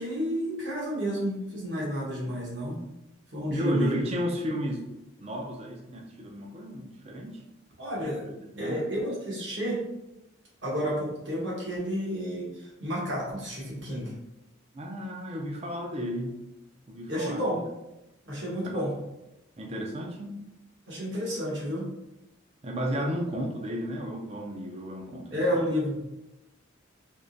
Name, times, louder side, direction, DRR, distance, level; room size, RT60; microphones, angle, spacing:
voice 1, 0.0-2.8 3.3-4.0 7.8-8.3 8.6-9.8 10.6-14.1 17.1-17.6 18.3-18.9 20.9-21.8 25.3-26.0, equal, 65° right, -5 dB, 1.4 m, -30 dB
voice 2, 3.5-4.8 5.2-7.4 8.0-8.9 14.7-16.4 16.9-17.4 18.6-18.8 19.6-20.4 22.6-25.6, equal, 30° right, 1 dB, 0.5 m, -33 dB
3.6 x 2.9 x 2.7 m, 0.94 s
head